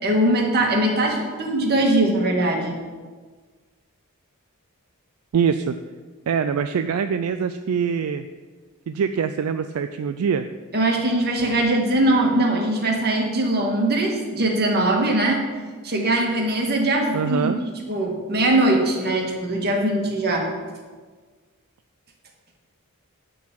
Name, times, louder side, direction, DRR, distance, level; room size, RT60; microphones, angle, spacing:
voice 1, 0.0-2.8 10.7-15.4 15.8-17.5 17.9-20.5, right 1 dB, 45° right, 1 dB, 1.6 m, -21 dB
voice 2, 5.3-5.8 6.3-8.3 8.9-10.5 17.1-17.6, right 6 dB, 70° right, 9 dB, 0.4 m, -23 dB
10.5 x 3.9 x 7.5 m, 1.4 s
head